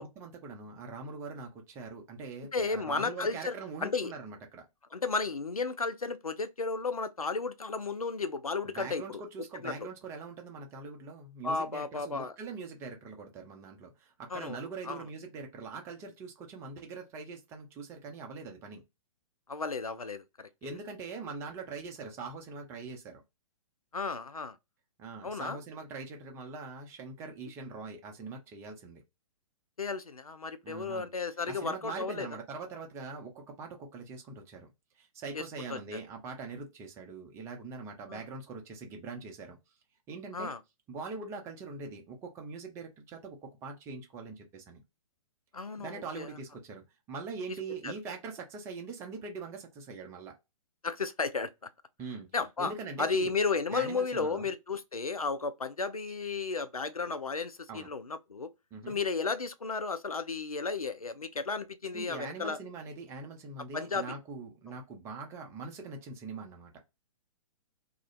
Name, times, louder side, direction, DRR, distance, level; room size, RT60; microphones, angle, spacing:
voice 1, 0.2-4.7 8.6-18.8 20.6-23.2 25.0-29.0 30.6-31.1 31.5-34.7 35.0-39.6 40.1-40.5 40.9-44.8 45.8-50.4 52.0-52.3 52.6-53.3 53.7-54.5 57.7-57.9 58.7-59.0 61.9-66.7, right 4 dB, 15° right, 0.5 m, -42 dB
voice 2, 2.5-3.5 3.8-4.1 4.9-9.2 9.6-9.9 11.4-12.3 14.3-14.6 14.8-15.0 19.5-20.5 23.9-24.6 25.2-25.6 29.8-32.3 35.3-36.0 38.1-38.2 40.3-40.6 45.5-46.3 47.8-47.9 50.8-51.5 52.3-52.7 53.0-58.5 58.9-62.6 63.7-64.1 64.7-64.8, left 4 dB, 90° left, 0.4 m, -33 dB
2.4 x 2.1 x 3.0 m
figure-of-eight pair, 120°, 18 cm